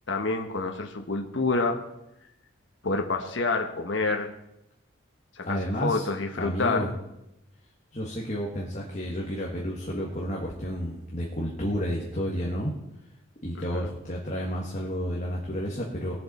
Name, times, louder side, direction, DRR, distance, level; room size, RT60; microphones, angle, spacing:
voice 1, 0.1-1.8 2.8-4.3 5.4-6.9 13.7-13.9, left 3 dB, 70° left, 4 dB, 1.2 m, -28 dB
voice 2, 5.4-6.1 6.3-6.9 7.9-12.7 13.4-16.2, equal, 35° left, -3 dB, 1.6 m, -31 dB
19.5 x 7.6 x 4.3 m, 0.85 s
head